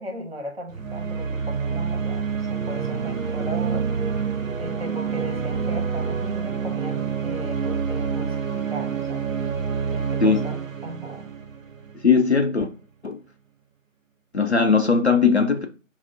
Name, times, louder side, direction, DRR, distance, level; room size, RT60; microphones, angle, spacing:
voice 1, 0.0-3.9 4.6-9.2 9.9-11.3, equal, 45° right, 1.0 m, -36 dB
sound 1, 0.7-12.3, right 6 dB, 75° right, 0.6 m, -27 dB
voice 2, 12.0-12.7 13.0-13.2 14.3-15.7, left 5 dB, 55° left, 0.5 m, -19 dB
4.3 x 2.0 x 3.7 m
figure-of-eight pair, 165°, 41 cm